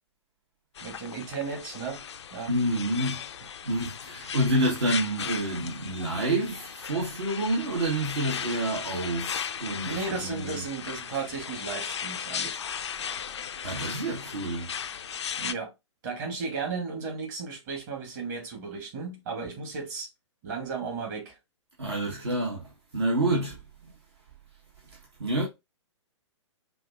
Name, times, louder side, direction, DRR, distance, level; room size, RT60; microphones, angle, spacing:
sound 1, 0.8-15.5, left 8 dB, 65° left, 0.4 m, -37 dB
voice 1, 0.8-2.0 2.3-2.5 4.2-4.4 9.8-12.6 15.4-15.7 16.0-20.1 20.4-21.4, right 4 dB, 40° right, 1.9 m, -35 dB
voice 2, 2.5-3.2 3.6-10.6 13.6-14.7 21.8-23.6 24.9-25.4, right 1 dB, 60° right, 1.3 m, -28 dB
5.7 x 2.5 x 2.4 m
figure-of-eight pair, 115°, 16 cm